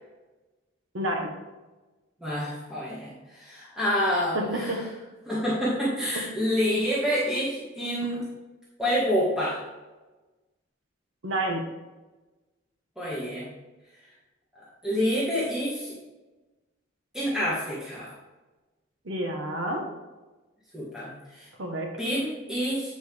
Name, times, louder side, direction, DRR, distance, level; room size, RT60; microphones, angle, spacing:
voice 1, 0.9-1.3 4.3-4.8 11.2-11.6 19.0-19.8 21.6-21.9, right 1 dB, 75° right, 2 dB, 1.3 m, -29 dB
voice 2, 2.2-4.7 5.3-8.2 8.8-9.6 13.0-13.4 14.8-15.9 17.1-18.1 20.7-21.5 22.0-22.9, equal, 5° right, -9 dB, 1.5 m, -27 dB
8.8 x 5.4 x 3.4 m, 1.2 s
head